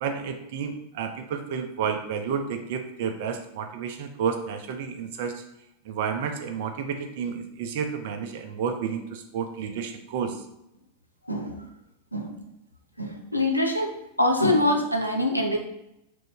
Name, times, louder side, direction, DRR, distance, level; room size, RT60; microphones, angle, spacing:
voice 1, 0.0-5.4 5.8-10.4, right 7 dB, 50° right, 6 dB, 0.5 m, -31 dB
voice 2, 11.3-11.7 12.1-12.4 13.0-13.9 14.2-15.6, left 1 dB, 90° left, 1 dB, 0.5 m, -24 dB
2.9 x 2.6 x 3.5 m, 0.84 s
figure-of-eight pair, 90°, 0 cm